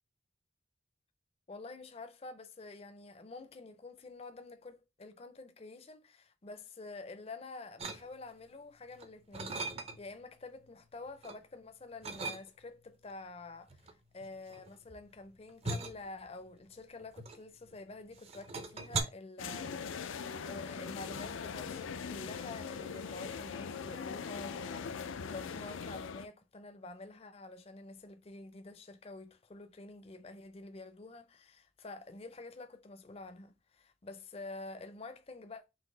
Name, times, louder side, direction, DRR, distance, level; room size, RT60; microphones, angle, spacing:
voice 1, 1.5-35.6, left 3 dB, 30° left, 0.5 m, -48 dB
sound 1, 7.8-8.5 8.9-10.2 10.6-11.4 12.0-12.8 13.7-17.8 18.1-19.0, right 3 dB, 30° right, 0.5 m, -40 dB
sound 2, 19.4-26.3, left 6 dB, 90° left, 0.4 m, -41 dB
3.9 x 2.8 x 3.8 m
head